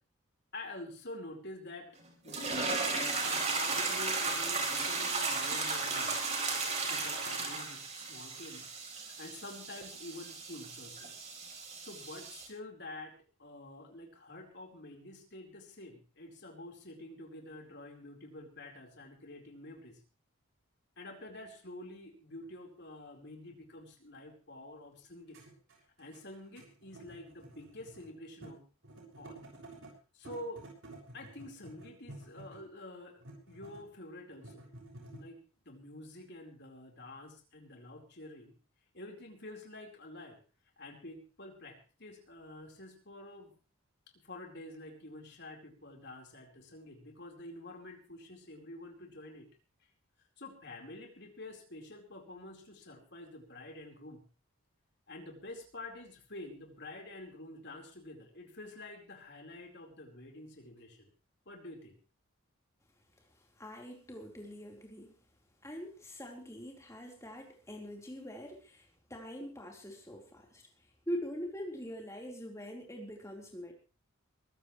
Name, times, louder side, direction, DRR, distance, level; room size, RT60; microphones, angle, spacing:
voice 1, 0.5-1.9 2.2-6.2 6.9-11.1 11.8-20.0 21.0-25.4 26.0-28.6 29.2-29.4 30.1-30.6 31.1-33.2 33.5-34.7 35.1-35.4 35.6-38.5 38.9-40.4 40.8-43.5 44.1-49.5 50.4-54.2 55.1-61.1 61.5-62.0, left 2 dB, 50° left, 2 dB, 4.6 m, -48 dB
sound 1, 2.3-12.5, right 4 dB, 30° right, 4.2 m, -35 dB
sound 2, 22.4-22.5 23.5-23.6 24.9-25.0 25.3-28.1 28.4-28.5 28.8-29.9 30.2-32.7 33.2-33.9 34.3-35.2, right 2 dB, 65° right, 6.6 m, -51 dB
voice 2, 63.3-65.2 65.6-73.7, equal, 15° left, 0 dB, 4.2 m, -43 dB
22.5 x 15.0 x 3.3 m, 0.36 s
head